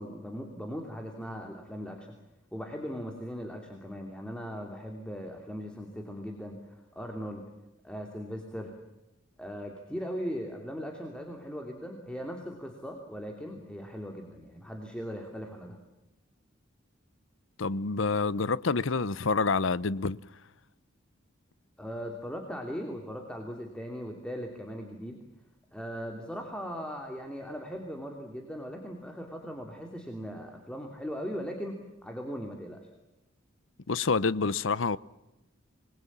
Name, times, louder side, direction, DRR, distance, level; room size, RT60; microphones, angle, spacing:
voice 1, 0.0-2.1 2.5-7.4 7.8-8.7 9.4-15.8 21.8-25.2 25.7-32.9, equal, 5° left, 2.8 m, -39 dB
voice 2, 17.6-20.2 33.9-35.0, left 4 dB, 80° left, 0.8 m, -27 dB
27.5 x 21.0 x 7.4 m
head